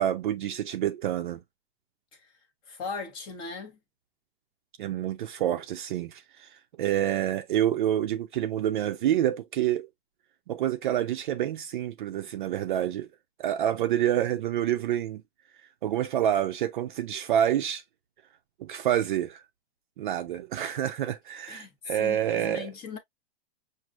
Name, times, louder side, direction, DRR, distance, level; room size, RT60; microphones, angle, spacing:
voice 1, 0.0-1.4 4.8-9.9 10.5-13.1 13.4-15.2 15.8-17.8 18.6-19.4 20.0-22.7, right 11 dB, 50° right, 0.5 m, -28 dB
voice 2, 2.7-3.8 21.5-21.7 22.0-23.0, left 5 dB, 15° left, 0.5 m, -38 dB
6.0 x 2.5 x 2.4 m
supercardioid pair, 175°, 32 cm